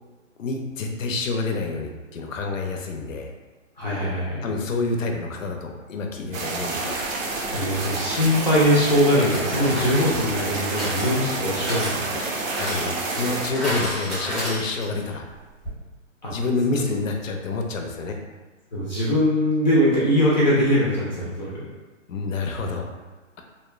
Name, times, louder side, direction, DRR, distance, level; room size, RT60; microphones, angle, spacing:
voice 1, 0.4-3.3 4.4-7.0 9.7-9.9 12.5-15.3 16.3-18.2 22.1-22.9, left 3 dB, 80° left, 3 dB, 0.6 m, -28 dB
voice 2, 3.8-4.5 7.5-12.2 16.2-16.3 16.7-16.8 18.7-21.7, equal, 35° left, -7 dB, 0.4 m, -21 dB
sound 1, 6.3-13.5, right 3 dB, 85° right, 0.6 m, -29 dB
sound 2, 9.3-15.1 15.3-15.4 15.6-15.7, equal, 5° right, 0.7 m, -32 dB
2.6 x 2.1 x 2.3 m, 1.2 s
hypercardioid pair, 155°, 39 cm